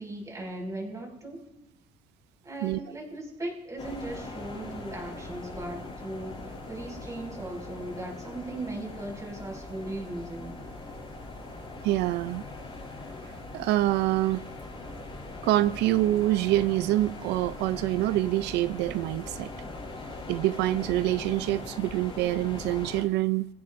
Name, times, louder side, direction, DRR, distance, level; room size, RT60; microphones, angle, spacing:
voice 1, 0.0-1.4 2.4-6.4 6.7-10.6, right 1 dB, 20° right, 5.8 m, -38 dB
sound 1, 3.8-23.0, left 2 dB, 30° left, 6.2 m, -41 dB
voice 2, 11.8-12.4 13.5-14.4 15.4-19.5 20.3-23.5, right 15 dB, 85° right, 0.5 m, -26 dB
29.5 x 16.5 x 2.6 m
cardioid pair, 110°, 17 cm